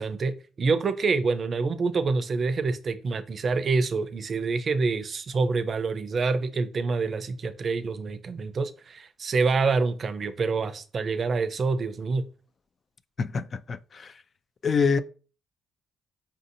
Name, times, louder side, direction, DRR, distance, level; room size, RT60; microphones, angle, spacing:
voice 1, 0.0-12.2, right 4 dB, 45° right, 0.5 m, -26 dB
voice 2, 13.2-14.1 14.6-15.0, left 5 dB, 45° left, 0.3 m, -26 dB
5.4 x 2.7 x 2.6 m
cardioid pair, 90°, 0 cm